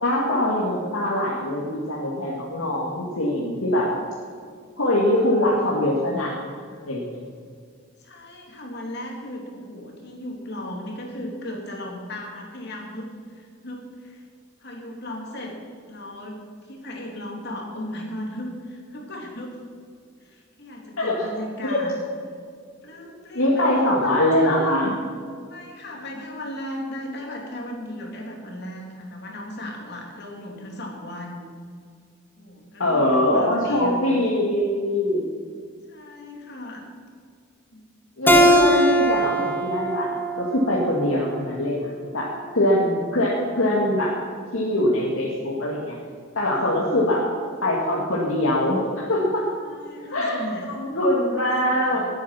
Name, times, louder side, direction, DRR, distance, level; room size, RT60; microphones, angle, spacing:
voice 1, 0.0-3.9 4.8-6.3 6.9-7.0 21.0-21.1 21.6-21.8 23.3-24.9 32.8-35.2 38.2-40.1 40.4-42.3 42.5-44.1 44.5-46.0 46.3-47.2 47.6-49.4 50.1-52.1, left 1 dB, 90° left, -5 dB, 2.4 m, -22 dB
voice 2, 8.0-14.2 14.6-15.5 15.9-16.4 16.7-19.6 20.2-22.0 22.8-23.6 24.0-25.0 25.5-31.5 32.4-34.2 35.9-37.2 37.7-37.8 49.6-50.8 51.2-52.1, left 1 dB, 55° left, 0 dB, 3.2 m, -36 dB
Keyboard (musical), 38.3-41.5, equal, 10° left, 1.3 m, -21 dB
18.5 x 9.5 x 6.0 m, 2.1 s
head